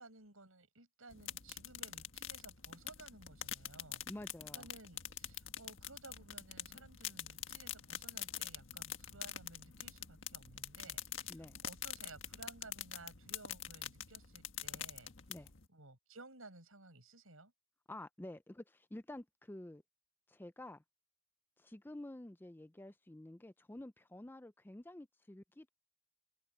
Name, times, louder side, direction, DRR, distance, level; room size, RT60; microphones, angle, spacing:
voice 1, 0.0-4.0 4.5-11.4 11.6-15.1 15.7-17.5, right 2 dB, 80° right, 7.0 m, -57 dB
sound 1, 1.1-15.6, left 11 dB, 65° left, 1.6 m, -46 dB
voice 2, 4.1-4.7 11.3-11.6 15.3-15.5 17.9-19.8 20.3-20.8 21.6-25.7, left 1 dB, 10° left, 0.4 m, -50 dB
open air
head